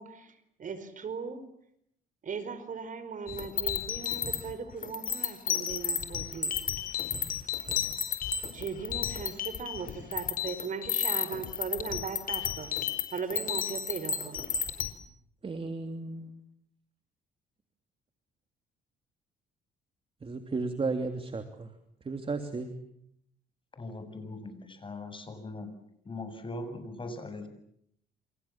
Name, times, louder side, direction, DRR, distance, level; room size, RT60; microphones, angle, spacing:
voice 1, 0.0-1.4 2.2-6.5 8.5-12.7 13.1-14.5, right 5 dB, 50° right, 13 dB, 4.8 m, -38 dB
sound 1, 3.3-14.9, left 8 dB, 50° left, 4.6 m, -32 dB
voice 2, 15.4-16.3 20.2-21.7 22.0-22.7, right 3 dB, 30° right, 7 dB, 3.1 m, -34 dB
voice 3, 23.8-25.7 26.0-27.5, left 2 dB, 30° left, 9 dB, 7.7 m, -40 dB
28.5 x 28.0 x 7.5 m, 0.73 s
supercardioid pair, 80°, 18 cm